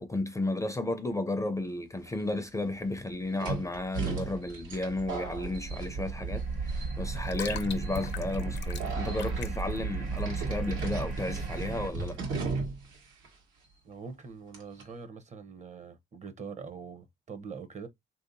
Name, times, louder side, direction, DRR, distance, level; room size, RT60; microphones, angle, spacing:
voice 1, 0.0-12.2, left 2 dB, 15° left, 0.4 m, -33 dB
sound 1, 2.1-2.2 3.4-6.4 6.7-7.2 7.8-8.1 8.8-9.4 10.2-13.0 13.2-13.3 14.5-14.8, right 4 dB, 90° right, 1.2 m, -37 dB
sound 2, 4.4-11.9, right 4 dB, 70° right, 1.4 m, -35 dB
sound 3, 4.7-11.5, left 9 dB, 65° left, 0.5 m, -44 dB
voice 2, 13.8-17.9, right 5 dB, 35° right, 0.6 m, -43 dB
3.3 x 2.7 x 2.5 m
cardioid pair, 90°, 20 cm